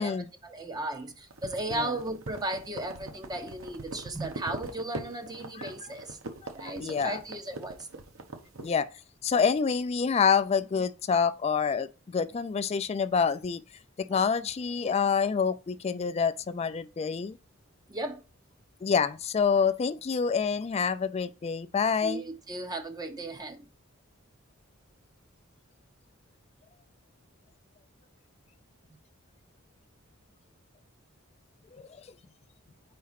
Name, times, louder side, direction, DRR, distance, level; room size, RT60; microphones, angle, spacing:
voice 1, 0.0-6.2 6.5-7.9 14.1-14.2 17.9-18.2 22.0-23.6, right 2 dB, 20° right, 0.6 m, -36 dB
sound 1, 1.3-8.7, right 3 dB, 70° right, 1.0 m, -41 dB
voice 2, 6.6-7.2 8.6-8.9 9.2-13.6 14.0-17.4 18.8-22.2 31.7-31.9, left 6 dB, 30° left, 0.3 m, -27 dB
4.8 x 4.3 x 5.7 m
head